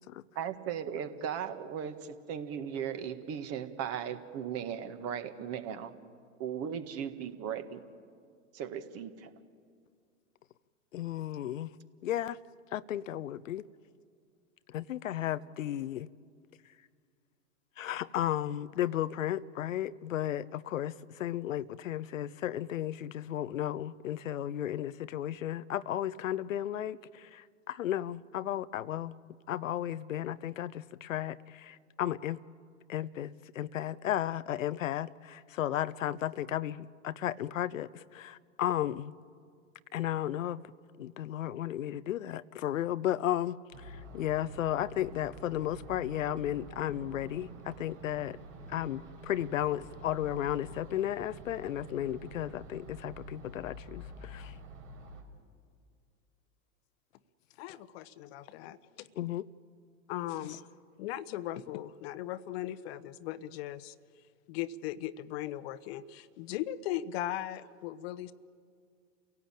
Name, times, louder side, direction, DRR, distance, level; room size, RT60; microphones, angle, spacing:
voice 1, 0.3-5.9 6.4-7.8 8.5-9.3, right 8 dB, 40° right, 1.8 m, -37 dB
voice 2, 10.9-11.7 12.0-12.4 12.7-13.7 14.7-16.1 17.8-29.2 29.5-32.4 32.9-39.1 39.9-40.6 41.0-48.4 48.7-54.5 59.2-59.5, left 12 dB, 75° left, 0.7 m, -34 dB
sound 1, 43.7-55.2, right 1 dB, 70° right, 4.5 m, -48 dB
voice 3, 57.6-59.1 60.1-60.7 61.0-63.9 64.5-68.3, left 13 dB, 50° left, 1.0 m, -38 dB
29.0 x 17.0 x 8.9 m
hypercardioid pair, 110°, 39 cm